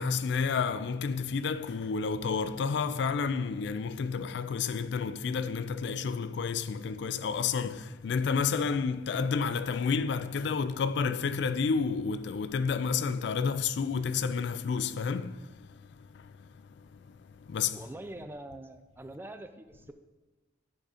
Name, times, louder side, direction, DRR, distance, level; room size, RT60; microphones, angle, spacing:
voice 1, 0.0-17.8, left 5 dB, 65° left, 0.3 m, -31 dB
voice 2, 17.7-19.9, right 1 dB, 10° right, 0.3 m, -44 dB
10.5 x 3.8 x 4.9 m
head